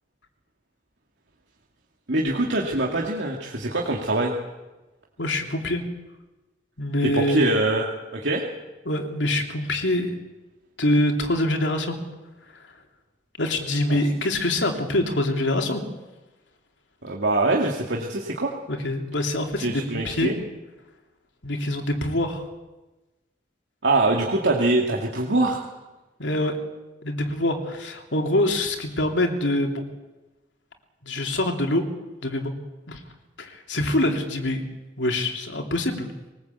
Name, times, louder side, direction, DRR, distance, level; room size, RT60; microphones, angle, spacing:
voice 1, 2.1-4.3 7.0-7.9 8.1-8.4 17.0-18.5 19.6-20.4 23.8-25.6, right 2 dB, 75° right, -1 dB, 2.4 m, -23 dB
voice 2, 5.2-5.8 6.8-7.4 8.8-10.1 10.8-12.0 13.4-15.8 18.7-20.3 21.4-22.4 26.2-26.6 27.0-29.8 31.0-31.8 32.2-32.5 32.9-33.0 33.4-34.6 35.0-36.1, left 1 dB, 85° left, 3 dB, 3.2 m, -25 dB
22.5 x 19.0 x 8.4 m, 1.1 s
head